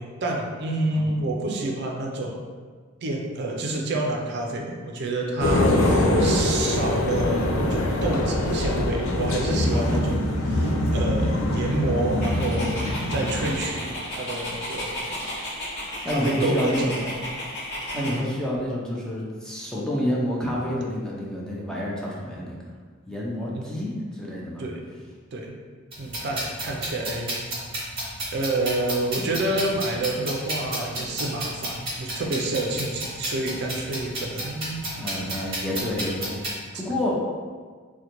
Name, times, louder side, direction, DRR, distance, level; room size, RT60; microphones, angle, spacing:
voice 1, 0.0-2.4 3.0-15.1 16.1-17.1 17.9-18.2 23.5-23.8 24.6-24.8 25.3-25.6 26.0-27.5 28.3-34.9 35.3-35.6, right 2 dB, 55° right, 0 dB, 0.4 m, -28 dB
voice 2, 0.9-1.2 5.8-6.3 9.7-10.1 16.0-17.0 17.9-22.6 23.1-24.6 35.0-37.1, equal, 5° left, -5 dB, 0.4 m, -29 dB
sound 1, 5.4-13.5, left 1 dB, 75° left, 0.4 m, -23 dB
Dog, 12.2-18.2, equal, 55° left, 0.8 m, -33 dB
sound 2, 25.9-36.5, right 1 dB, 25° right, 1.0 m, -32 dB
3.7 x 2.1 x 2.9 m, 1.5 s
head